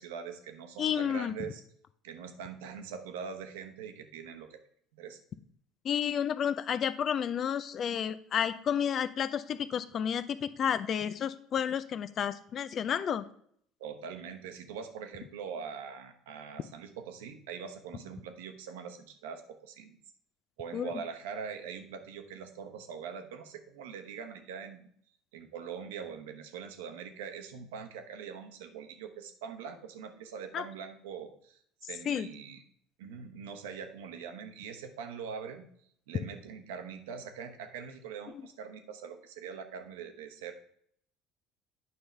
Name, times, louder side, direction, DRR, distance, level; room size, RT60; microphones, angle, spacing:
voice 1, 0.0-1.6 2.0-4.6 4.9-5.2 13.8-20.0 20.6-24.9 25.3-31.6 31.9-32.6 33.0-35.7 36.1-40.5, right 6 dB, 70° right, 6 dB, 1.0 m, -43 dB
voice 2, 0.8-1.3 5.8-13.3 20.7-20.9 30.5-30.6 32.1-32.3, left 8 dB, 45° left, 14 dB, 0.5 m, -31 dB
9.5 x 5.6 x 3.3 m, 0.64 s
hypercardioid pair, 65°, 0 cm